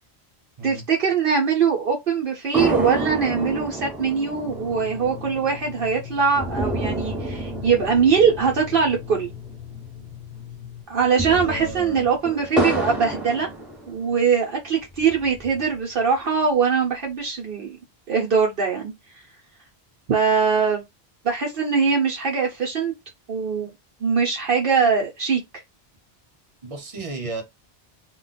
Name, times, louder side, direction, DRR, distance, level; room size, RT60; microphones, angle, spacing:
voice 1, 0.6-9.3 10.9-13.5 13.9-17.8 18.1-18.9 20.1-20.8 21.2-22.9 23.3-23.7 24.0-25.4, right 6 dB, 60° right, 0.9 m, -22 dB
sound 1, 2.5-10.1 10.4-10.5 10.9-14.3 14.8-15.8, right 1 dB, ahead, 0.9 m, -30 dB
sound 2, 4.4-10.8, left 11 dB, 65° left, 0.8 m, -40 dB
voice 2, 11.3-12.1 26.6-27.4, right 2 dB, 35° right, 0.9 m, -33 dB
2.4 x 2.2 x 3.9 m
omnidirectional pair, 1.1 m